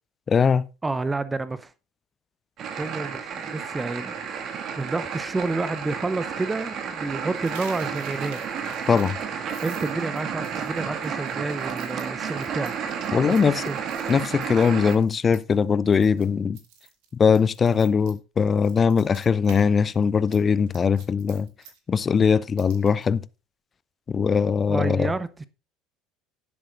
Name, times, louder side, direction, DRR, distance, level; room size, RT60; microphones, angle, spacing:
voice 1, 0.3-0.6 8.9-9.2 13.1-13.6 14.1-16.6 17.1-21.5 21.9-23.2 24.1-25.1, left 6 dB, 30° left, 0.5 m, -21 dB
voice 2, 0.8-1.7 2.8-8.4 9.6-12.7 13.1-13.8 24.6-25.5, right 3 dB, 15° right, 0.6 m, -30 dB
sound 1, 2.6-15.0, right 7 dB, 45° right, 1.6 m, -32 dB
Coin (dropping), 7.4-15.6 15.9-16.3 16.5-19.7 19.9-23.1, right 7 dB, 60° right, 2.0 m, -49 dB
17.0 x 7.8 x 2.5 m
figure-of-eight pair, 65°, 0 cm